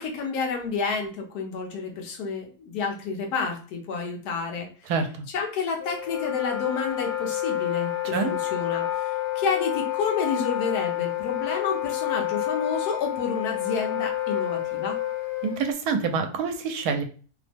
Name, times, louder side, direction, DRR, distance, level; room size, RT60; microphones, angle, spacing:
voice 1, 0.0-4.7 5.3-15.0, left 5 dB, 80° left, 2 dB, 1.3 m, -30 dB
voice 2, 4.8-5.2 8.0-8.3 15.4-17.0, right 5 dB, 80° right, 6 dB, 1.1 m, -26 dB
Wind instrument woodwind instrument, 5.8-15.7, left 13 dB, 55° left, 1.0 m, -29 dB
3.1 x 2.0 x 3.3 m, 0.39 s
omnidirectional pair, 1.6 m